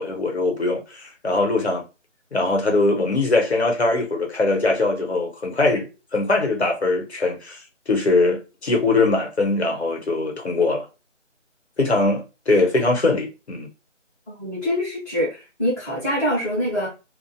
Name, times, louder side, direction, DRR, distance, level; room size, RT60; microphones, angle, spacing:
voice 1, 0.0-1.8 2.3-10.9 11.8-13.7, left 2 dB, 60° left, 0.9 m, -21 dB
voice 2, 14.3-16.9, equal, 15° left, 1.2 m, -24 dB
2.6 x 2.4 x 2.3 m
figure-of-eight pair, 165°, 38 cm